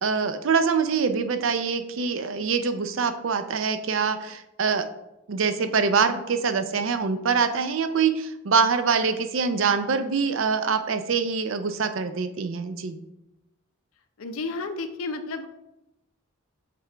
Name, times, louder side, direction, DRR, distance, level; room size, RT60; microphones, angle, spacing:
voice 1, 0.0-4.9 5.3-13.0, right 5 dB, 65° right, 10 dB, 0.5 m, -24 dB
voice 2, 14.2-15.5, left 3 dB, 75° left, 8 dB, 0.6 m, -32 dB
7.5 x 3.8 x 3.3 m, 0.92 s
head